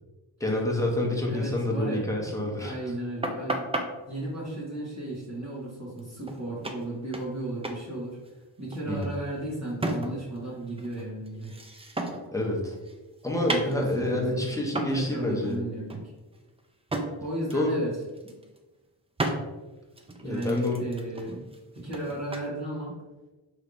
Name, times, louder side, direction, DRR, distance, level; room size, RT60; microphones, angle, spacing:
voice 1, 0.4-2.7 8.9-9.1 12.3-12.7 13.2-15.6 17.5-17.8 20.2-20.8, left 1 dB, 5° left, -2 dB, 0.8 m, -28 dB
voice 2, 1.2-2.2 2.6-3.6 4.1-8.2 8.6-11.5 13.4-14.6 14.9-16.0 17.0-17.9 18.2-18.3 20.2-21.5 21.7-22.9, right 1 dB, 35° right, -8 dB, 1.3 m, -34 dB
sound 1, 3.2-3.9 6.0-6.1 6.3-6.4 6.6-7.4 7.6-7.8 8.1-10.4 10.7-12.3 12.7-14.2 14.7-15.0 15.4-15.6 15.9-17.1 17.5-17.7 18.0-18.6 19.2-19.4 19.9-22.5, right 2 dB, 15° right, 0.3 m, -34 dB
3.2 x 3.1 x 2.5 m, 1.1 s
cardioid pair, 55°, 47 cm